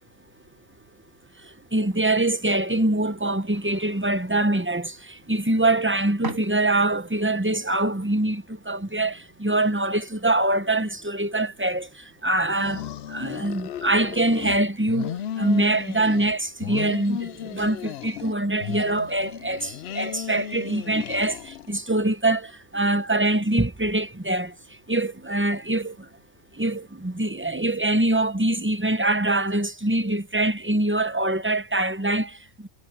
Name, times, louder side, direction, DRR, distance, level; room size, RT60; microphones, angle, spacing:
voice 1, 1.4-12.8 13.1-24.5 24.9-26.1 26.5-32.7, right 2 dB, 10° right, 0.6 m, -24 dB
sound 1, 1.7-7.1, right 2 dB, 85° right, 5.3 m, -44 dB
sound 2, 12.5-14.6 14.9-16.3 16.6-18.3 18.6-21.8, left 11 dB, 65° left, 0.7 m, -35 dB
omnidirectional pair, 1.4 m